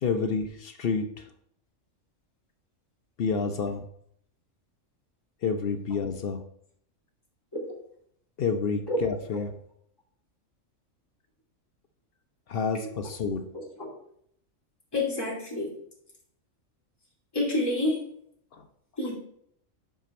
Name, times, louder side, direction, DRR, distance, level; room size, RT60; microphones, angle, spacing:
voice 1, 0.0-1.2 3.2-3.8 5.4-6.4 8.4-9.5 12.5-13.4 18.5-18.6, left 5 dB, 55° left, 7 dB, 0.7 m, -29 dB
voice 2, 13.5-13.9 14.9-15.7 17.3-18.0 19.0-19.1, left 1 dB, 15° left, -4 dB, 2.2 m, -29 dB
6.1 x 5.5 x 4.2 m, 0.68 s
omnidirectional pair, 1.4 m